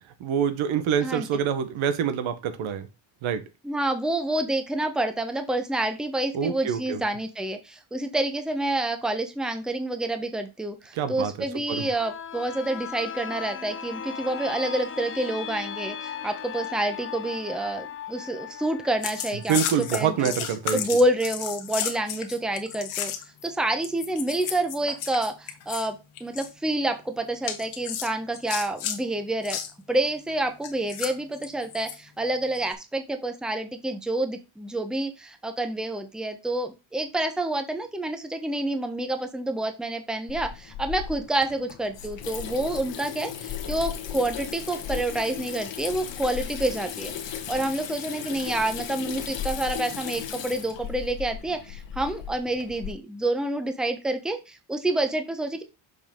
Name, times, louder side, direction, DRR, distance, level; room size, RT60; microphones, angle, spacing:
voice 1, 0.2-2.9 3.2-3.4 6.3-7.0 10.9-11.3 11.7-11.9 19.5-20.8, right 8 dB, 75° right, 1.2 m, -26 dB
voice 2, 3.6-20.3 20.7-23.1 23.4-29.6 29.9-47.1 47.5-55.6, right 1 dB, ahead, 0.8 m, -28 dB
sound 1, 11.7-21.3 21.7-21.8, left 8 dB, 25° left, 0.6 m, -38 dB
sound 2, 19.0-23.4 23.8-25.9 26.2-26.5 27.4-29.0 29.4-29.7 30.6-32.0 32.6-32.7, left 9 dB, 80° left, 1.5 m, -33 dB
Water tap faucet / Sink (filling or washing), 40.3-52.9, left 8 dB, 60° left, 1.3 m, -36 dB
6.6 x 5.2 x 3.7 m
cardioid pair, 130°, 48 cm